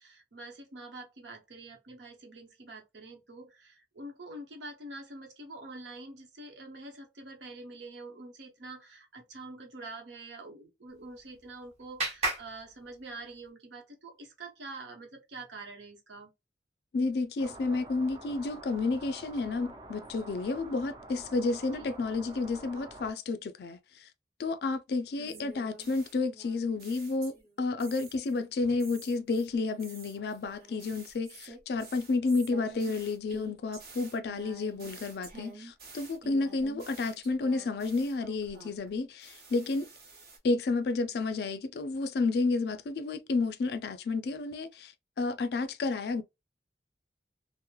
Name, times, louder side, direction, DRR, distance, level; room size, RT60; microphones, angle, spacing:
voice 1, 0.0-16.3 21.8-21.9 25.2-25.5, right 2 dB, 85° right, 0.9 m, -46 dB
Clapping, 10.9-13.5, right 2 dB, 40° right, 1.1 m, -37 dB
voice 2, 16.9-24.1 24.4-27.3 27.6-39.9 40.4-46.2, left 3 dB, 65° left, 0.4 m, -31 dB
sound 1, 17.4-23.1, right 2 dB, 20° right, 0.4 m, -47 dB
sound 2, 25.2-27.5 27.8-28.4 28.8-38.9 39.2-40.4, right 3 dB, 55° right, 1.1 m, -49 dB
3.0 x 2.0 x 2.3 m
head